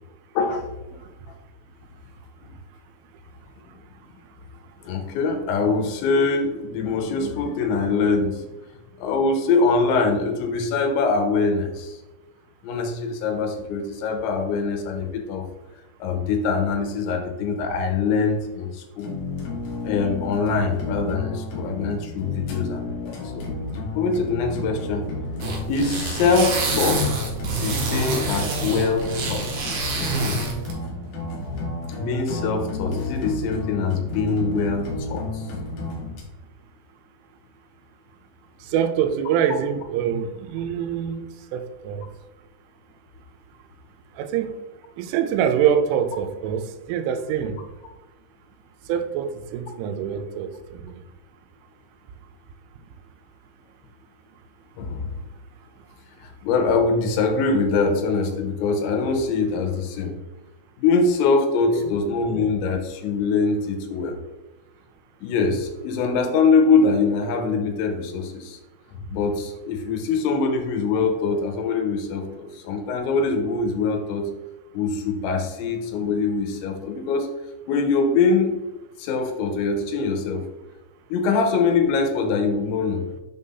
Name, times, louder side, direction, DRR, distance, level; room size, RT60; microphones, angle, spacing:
voice 1, 0.4-0.7 2.4-2.5 4.9-8.5 9.0-12.0 12.6-15.5 16.0-19.1 19.8-23.5 23.9-25.1 25.7-29.7 30.1-30.4 32.0-35.5 54.8-55.1 56.2-60.1 60.8-64.2 65.2-68.6 69.1-74.3 74.7-77.3 77.7-78.5 79.0-80.4 81.1-83.0, left 4 dB, 85° left, 4 dB, 3.1 m, -23 dB
sound 1, 19.0-36.2, left 2 dB, 65° left, 2.5 m, -32 dB
sound 2, 25.4-30.7, right 2 dB, 65° right, 2.9 m, -27 dB
voice 2, 38.6-42.1 44.2-44.6 45.0-47.6 48.9-51.0 61.7-61.9, right 8 dB, 90° right, 8 dB, 3.1 m, -25 dB
7.0 x 5.4 x 2.7 m, 1.1 s
omnidirectional pair, 5.4 m